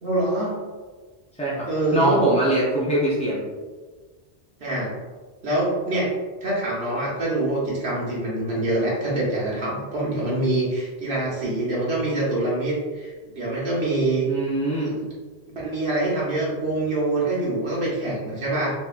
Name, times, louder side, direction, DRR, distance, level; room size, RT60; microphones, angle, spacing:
voice 1, 0.0-0.5 1.6-2.1 4.6-4.9 5.4-6.1 6.4-14.3 14.8-15.1 15.5-18.7, right 2 dB, 70° right, -6 dB, 1.3 m, -25 dB
voice 2, 1.9-3.4 14.3-14.9, right 1 dB, 10° left, -8 dB, 0.4 m, -22 dB
4.1 x 2.8 x 2.4 m, 1.4 s
omnidirectional pair, 1.1 m